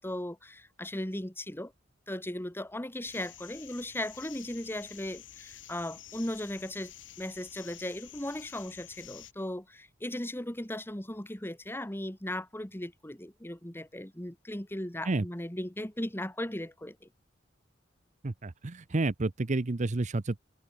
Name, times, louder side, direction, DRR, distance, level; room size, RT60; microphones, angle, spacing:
voice 1, 0.0-1.7 2.1-6.9 7.2-17.1, left 1 dB, 10° left, 1.9 m, -37 dB
sound 1, 3.0-9.3, left 12 dB, 75° left, 1.5 m, -50 dB
voice 2, 18.2-20.4, right 2 dB, 40° right, 0.7 m, -30 dB
open air
head